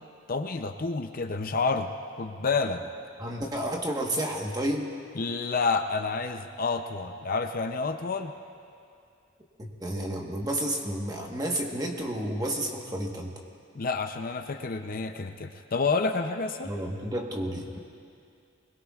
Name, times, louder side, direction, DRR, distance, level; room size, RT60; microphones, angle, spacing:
voice 1, 0.3-1.9 2.2-2.8 5.1-8.3 13.7-16.7, left 4 dB, 45° left, 6 dB, 0.5 m, -29 dB
voice 2, 3.2-4.9 9.6-13.3 16.6-17.8, right 1 dB, 20° right, 0 dB, 1.2 m, -31 dB
22.0 x 21.0 x 2.4 m, 2.5 s
head